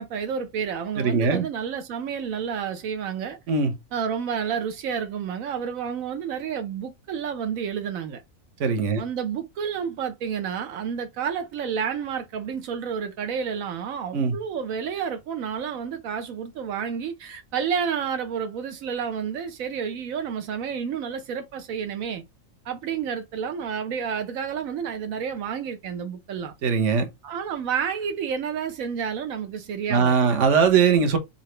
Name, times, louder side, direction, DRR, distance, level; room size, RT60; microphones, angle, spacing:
voice 1, 0.0-3.4 3.9-8.2 9.0-22.2 22.6-26.5 27.2-30.4, right 7 dB, 85° right, 1.1 m, -30 dB
voice 2, 1.0-1.4 3.5-3.7 8.6-9.0 14.1-14.4 26.6-27.1 29.9-31.2, right 5 dB, 65° right, 1.3 m, -20 dB
4.0 x 4.0 x 3.2 m
omnidirectional pair, 1.4 m